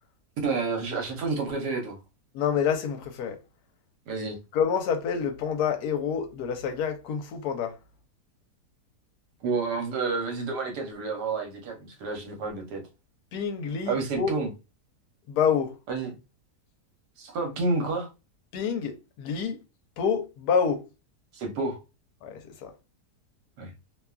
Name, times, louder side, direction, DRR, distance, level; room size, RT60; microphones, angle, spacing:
voice 1, 0.4-2.0 4.1-4.4 9.4-12.8 13.9-14.5 15.9-16.1 17.2-18.1 21.3-21.8 23.6-23.7, right 3 dB, 75° right, 1.4 m, -29 dB
voice 2, 2.3-3.4 4.5-7.7 13.3-14.4 15.3-15.7 18.5-19.6 20.0-20.8 22.2-22.7, left 7 dB, 75° left, 1.1 m, -27 dB
2.9 x 2.3 x 2.3 m
omnidirectional pair, 1.8 m